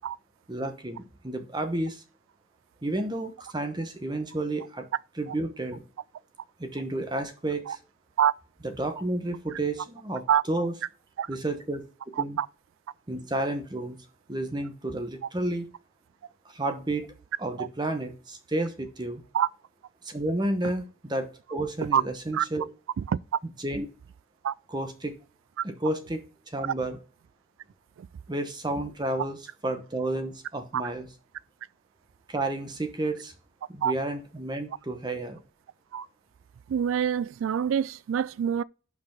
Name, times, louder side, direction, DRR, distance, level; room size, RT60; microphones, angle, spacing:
voice 1, 0.5-2.0 2.8-4.9 5.2-5.8 6.6-7.8 8.6-10.7 11.3-11.8 12.2-12.4 13.1-14.0 14.3-15.6 16.4-17.1 17.4-19.2 20.0-22.6 23.6-23.9 24.7-25.1 25.6-27.0 28.3-29.4 29.6-31.1 32.3-33.3 33.7-35.4, right 2 dB, 20° right, 1.0 m, -31 dB
voice 2, 36.7-38.6, right 9 dB, 80° right, 0.3 m, -25 dB
5.9 x 4.7 x 6.2 m
head